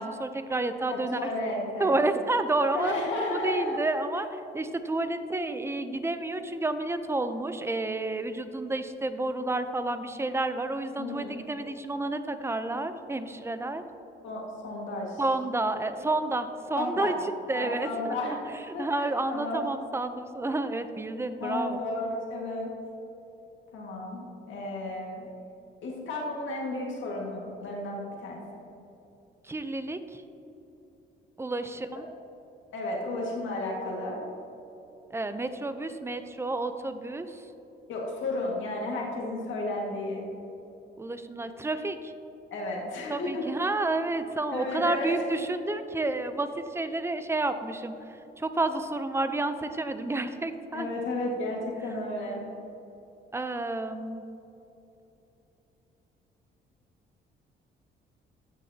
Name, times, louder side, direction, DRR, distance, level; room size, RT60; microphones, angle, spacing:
voice 1, 0.0-1.3 1.8-2.9 3.3-4.3 4.5-13.8 15.2-17.1 17.5-18.2 18.8-21.8 29.5-30.2 31.4-32.1 35.1-37.4 41.0-42.1 43.1-47.9 48.4-50.9 53.3-54.2, right 2 dB, 15° right, 9 dB, 0.6 m, -30 dB
voice 2, 0.9-2.0 2.7-3.8 11.0-11.4 14.2-15.2 16.8-17.2 17.5-19.7 21.4-22.7 23.7-25.3 25.8-28.6 31.7-31.8 32.7-34.2 37.9-40.2 42.5-43.4 44.5-45.4 50.7-52.4, left 2 dB, 75° left, -2 dB, 1.9 m, -33 dB
14.5 x 6.3 x 2.8 m, 3.0 s
cardioid pair, 90°, 20 cm